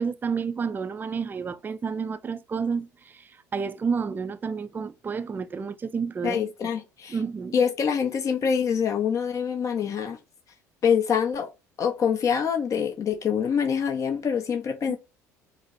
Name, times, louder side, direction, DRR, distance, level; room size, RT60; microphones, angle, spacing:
voice 1, 0.0-6.7 7.1-7.6 14.8-15.0, right 5 dB, 20° right, 0.4 m, -30 dB
voice 2, 6.2-7.2 7.5-10.2 10.8-11.5 11.8-15.0, left 7 dB, 40° left, 0.7 m, -25 dB
4.9 x 2.0 x 2.5 m
hypercardioid pair, 60°, 9 cm